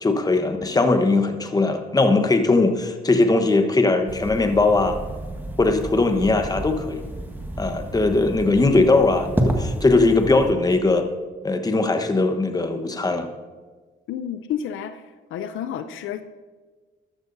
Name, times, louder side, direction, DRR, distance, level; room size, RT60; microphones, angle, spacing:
voice 1, 0.0-5.0 5.6-7.0 7.6-11.0 11.4-13.3, left 3 dB, 20° left, 1.1 m, -20 dB
sound 1, 4.1-10.5, right 1 dB, 10° right, 1.5 m, -30 dB
voice 2, 14.1-15.0 15.3-16.2, left 9 dB, 80° left, 0.6 m, -30 dB
13.5 x 12.5 x 2.7 m
cardioid pair, 90°, 20 cm